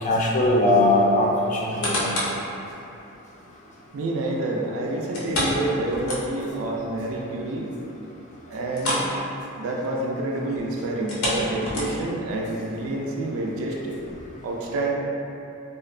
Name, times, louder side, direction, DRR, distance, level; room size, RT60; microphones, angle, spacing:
voice 1, 0.0-2.1, left 1 dB, 35° left, -3 dB, 0.3 m, -20 dB
sound 1, 1.5-2.4 2.9-3.0 5.1-6.6 6.9-7.0 7.5-7.6 8.7-9.1 9.4-9.6 10.9-12.2 12.8-12.9, left 1 dB, 80° left, 0.6 m, -28 dB
voice 2, 3.9-7.7 8.5-9.1 9.6-14.0 14.4-14.9, right 2 dB, 65° right, -1 dB, 0.3 m, -28 dB
2.7 x 2.0 x 2.4 m, 2.8 s
head